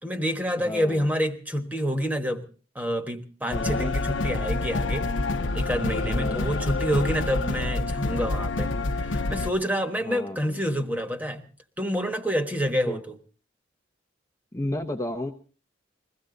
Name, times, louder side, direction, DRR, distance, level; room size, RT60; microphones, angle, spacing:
voice 1, 0.0-2.4 2.7-5.1 5.5-8.7 9.0-11.4 11.8-13.2, equal, 10° right, 1.3 m, -28 dB
voice 2, 0.6-1.1 3.4-3.9 6.0-6.5 10.1-10.4 12.9-13.0 14.5-15.3, left 1 dB, 15° left, 0.8 m, -32 dB
sound 1, 3.5-9.5, left 2 dB, 70° left, 0.8 m, -27 dB
21.5 x 15.5 x 3.9 m
head